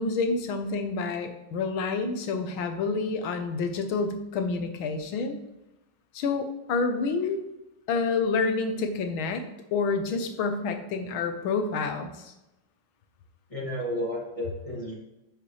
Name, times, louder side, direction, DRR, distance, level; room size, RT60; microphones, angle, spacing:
voice 1, 0.0-5.4 6.1-7.5 7.9-12.3, left 4 dB, 85° left, 6 dB, 1.7 m, -28 dB
voice 2, 13.5-14.9, equal, 15° left, -5 dB, 2.2 m, -32 dB
10.0 x 5.7 x 3.3 m, 0.92 s
omnidirectional pair, 2.2 m